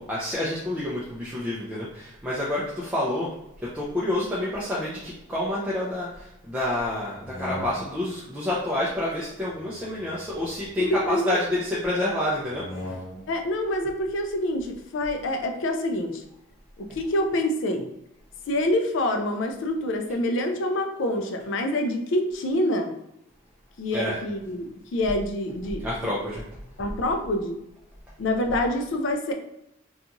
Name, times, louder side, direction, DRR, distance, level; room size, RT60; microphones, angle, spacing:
voice 1, 0.0-3.3 3.6-12.7 23.9-24.2 25.8-26.7, left 1 dB, 10° right, -8 dB, 0.4 m, -28 dB
sound 1, 7.1-8.2 9.5-11.1 12.4-13.5, left 1 dB, 85° left, 0.8 m, -40 dB
voice 2, 10.9-11.4 13.3-16.2 16.8-17.9 18.5-22.9 23.8-25.9 26.8-27.6 28.2-29.3, left 1 dB, 70° left, 5 dB, 0.4 m, -26 dB
2.6 x 2.3 x 2.8 m, 0.83 s
head